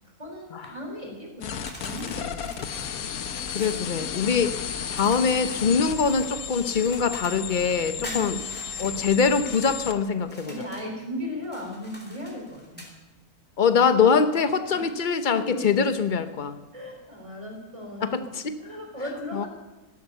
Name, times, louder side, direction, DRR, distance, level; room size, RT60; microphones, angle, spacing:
voice 1, 0.2-2.5 8.0-8.4 10.4-12.9 14.7-14.9 15.3-15.7 16.7-18.3 18.6-19.5, left 1 dB, 20° right, 1 dB, 3.6 m, -37 dB
sound 1, 1.4-10.0, left 7 dB, 70° left, 1.4 m, -33 dB
sound 2, 1.7-3.9 4.9-7.5 8.0-9.8 10.2-10.9 11.4-13.0, equal, 5° left, 2.8 m, -45 dB
voice 2, 3.5-4.5 4.9-8.4 8.8-10.5 13.6-16.6 18.0-18.5 19.3-19.5, left 5 dB, 40° left, 10 dB, 0.9 m, -23 dB
15.5 x 12.0 x 6.8 m, 1.1 s
omnidirectional pair, 1.6 m